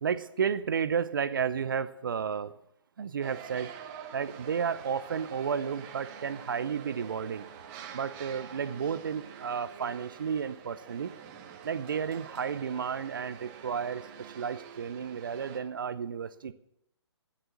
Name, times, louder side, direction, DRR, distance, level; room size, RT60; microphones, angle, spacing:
voice 1, 0.0-2.5 3.0-3.7 4.1-7.4 7.9-11.1 11.6-14.0 14.4-16.5, right 7 dB, 45° right, 14 dB, 0.7 m, -32 dB
sound 1, 3.2-15.6, right 8 dB, 20° right, 1.6 m, -47 dB
15.5 x 10.0 x 6.9 m, 0.78 s
figure-of-eight pair, 135°, 15 cm